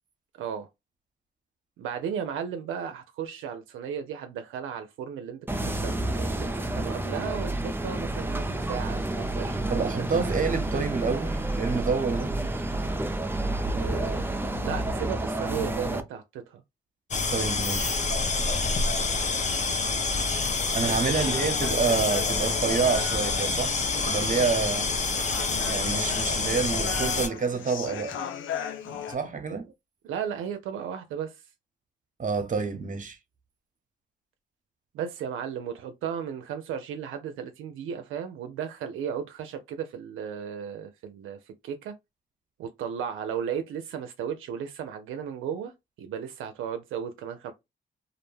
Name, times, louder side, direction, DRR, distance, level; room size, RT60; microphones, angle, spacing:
voice 1, 0.4-0.7 1.8-10.0 13.6-14.3 14.5-16.6 20.8-21.1 30.0-31.4 34.9-41.9 42.6-47.5, right 8 dB, 85° right, 0.4 m, -35 dB
sound 1, 5.5-16.0, right 1 dB, 10° right, 0.5 m, -29 dB
voice 2, 9.7-12.4 17.3-18.0 20.7-24.9 25.6-28.2 28.8-29.7 32.2-33.2, right 5 dB, 40° right, 0.8 m, -28 dB
sound 2, 17.1-27.3, left 3 dB, 35° left, 0.6 m, -27 dB
Human voice, 21.1-29.1, left 8 dB, 75° left, 0.5 m, -37 dB
2.4 x 2.1 x 3.1 m
cardioid pair, 60°, 20 cm